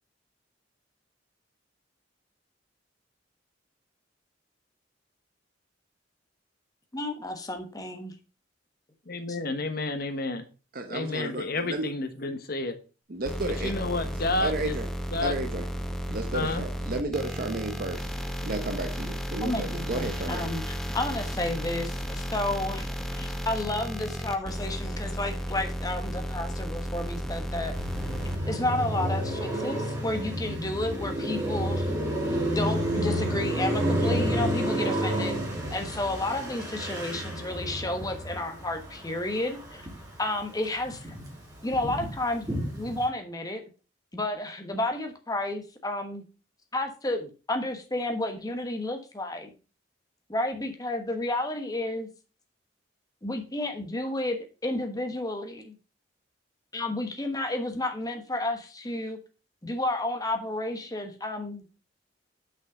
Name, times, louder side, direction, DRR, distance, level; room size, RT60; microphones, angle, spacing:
voice 1, 6.9-8.1 9.3-9.4 19.4-20.6 20.9-27.7 28.5-31.9 32.5-35.3 35.7-39.9 40.2-41.1 41.6-43.6 44.1-46.2 46.7-49.5 50.3-52.1 53.2-55.8 56.7-59.2 59.6-61.6, left 1 dB, 20° left, 1.2 m, -31 dB
voice 2, 9.1-10.4 10.9-12.8 13.6-14.8 15.1-15.3 16.3-16.6, left 2 dB, 55° left, 1.2 m, -30 dB
voice 3, 10.7-11.9 13.1-13.7 14.4-14.9 15.2-15.7 16.1-18.1 18.4-20.5, right 2 dB, 50° right, 1.0 m, -32 dB
sound 1, 13.3-28.4, equal, 5° left, 0.7 m, -33 dB
Car passing by, 27.7-40.2 40.5-43.0, equal, 20° right, 2.5 m, -30 dB
6.2 x 5.5 x 4.9 m
head